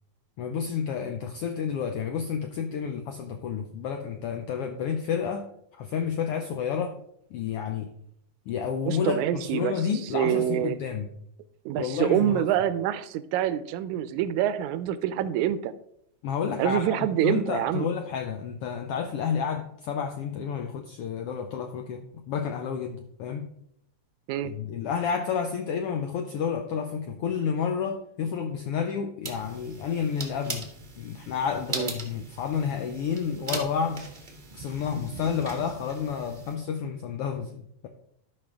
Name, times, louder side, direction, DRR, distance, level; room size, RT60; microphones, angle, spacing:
voice 1, 0.4-5.5 5.8-7.0 7.3-7.9 8.5-11.1 11.8-12.5 16.2-23.5 24.4-30.7 31.0-34.1 34.6-37.9, left 7 dB, 85° left, 6 dB, 1.3 m, -30 dB
voice 2, 8.9-9.9 10.1-10.8 11.7-15.7 16.6-17.9 24.3-24.5 31.7-31.9, right 11 dB, 85° right, 13 dB, 2.0 m, -26 dB
sound 1, 29.2-36.5, right 3 dB, 45° right, 0.5 m, -39 dB
12.5 x 5.5 x 3.5 m, 0.74 s
omnidirectional pair, 3.3 m